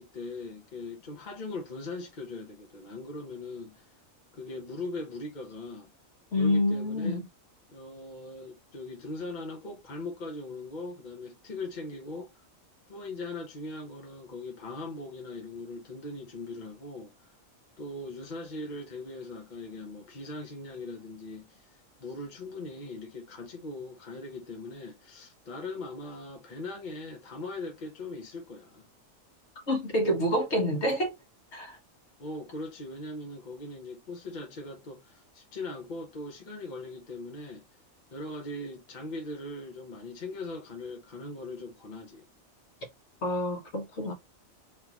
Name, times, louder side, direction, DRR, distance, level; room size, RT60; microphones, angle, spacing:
voice 1, 0.0-3.9 4.3-5.9 6.4-7.2 7.7-12.3 12.9-17.3 17.8-28.9 32.2-37.7 38.1-42.2, left 2 dB, 40° left, 0.9 m, -40 dB
voice 2, 6.3-7.2 29.7-31.1 31.5-31.8 43.2-44.1, left 1 dB, 55° left, 1.5 m, -27 dB
3.6 x 3.3 x 2.9 m
omnidirectional pair, 1.4 m